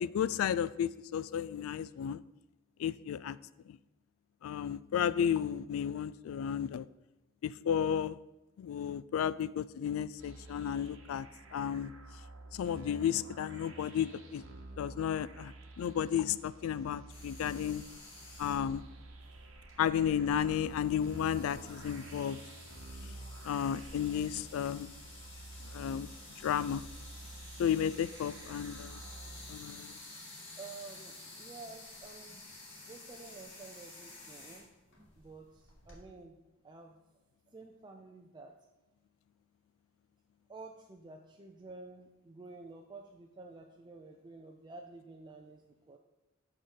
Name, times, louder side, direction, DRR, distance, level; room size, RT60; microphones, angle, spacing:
voice 1, 0.0-2.2 2.8-3.4 3.7-3.8 4.4-6.9 7.4-8.2 8.6-11.9 12.5-14.4 14.8-17.8 18.4-18.8 19.8-22.4 23.0-23.1 23.4-24.9 25.7-26.8 27.6-29.0 29.5-30.0, left 9 dB, 80° left, 17 dB, 0.3 m, -33 dB
sound 1, 10.2-29.6, right 2 dB, 75° right, 1.0 m, -50 dB
sound 2, 17.1-36.0, left 2 dB, 55° left, 2.3 m, -52 dB
voice 2, 30.6-32.5 32.8-34.7 35.2-37.0 37.5-38.6 40.5-46.0, right 3 dB, 20° right, 2 dB, 0.4 m, -51 dB
7.5 x 3.9 x 6.3 m, 0.97 s
head